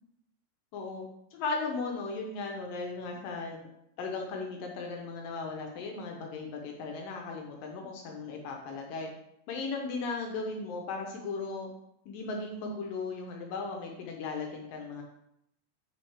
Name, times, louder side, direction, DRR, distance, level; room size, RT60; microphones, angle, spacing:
voice 1, 0.7-1.0 1.3-3.7 4.0-9.1 9.5-11.7 12.1-15.0, left 3 dB, 75° left, 1 dB, 2.4 m, -36 dB
7.8 x 5.8 x 3.5 m, 0.77 s
omnidirectional pair, 4.5 m